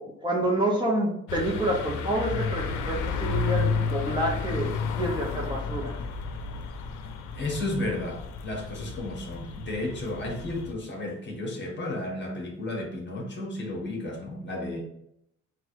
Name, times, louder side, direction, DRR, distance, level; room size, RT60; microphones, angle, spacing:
voice 1, 0.0-6.0, right 1 dB, 15° right, -2 dB, 1.0 m, -28 dB
sound 1, 1.3-10.7, left 4 dB, 85° left, 0.6 m, -32 dB
voice 2, 7.3-14.8, left 2 dB, 35° left, 0 dB, 1.6 m, -33 dB
4.0 x 2.5 x 4.5 m, 0.76 s
cardioid pair, 90°, 30 cm